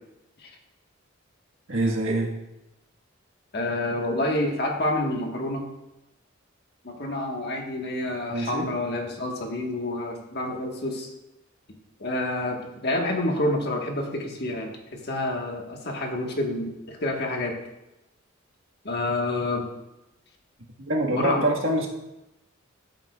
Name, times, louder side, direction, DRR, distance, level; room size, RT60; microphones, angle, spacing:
voice 1, 1.7-2.3 8.3-8.7 20.8-21.9, right 1 dB, 75° right, -1 dB, 1.6 m, -25 dB
voice 2, 3.5-5.6 6.8-11.1 12.0-17.5 18.8-19.7 21.1-21.4, left 1 dB, 55° left, 1 dB, 1.4 m, -28 dB
13.5 x 8.1 x 2.4 m, 0.93 s
head